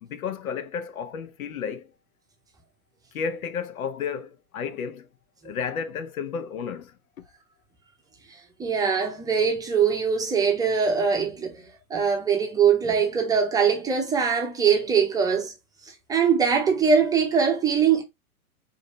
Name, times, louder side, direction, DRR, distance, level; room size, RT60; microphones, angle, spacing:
voice 1, 0.0-1.9 3.1-5.1 5.4-7.0, left 6 dB, 65° left, 1.0 m, -32 dB
voice 2, 8.3-15.5 15.8-18.0, right 6 dB, 10° right, 0.8 m, -22 dB
4.9 x 2.8 x 3.0 m
hypercardioid pair, 140°, 45 cm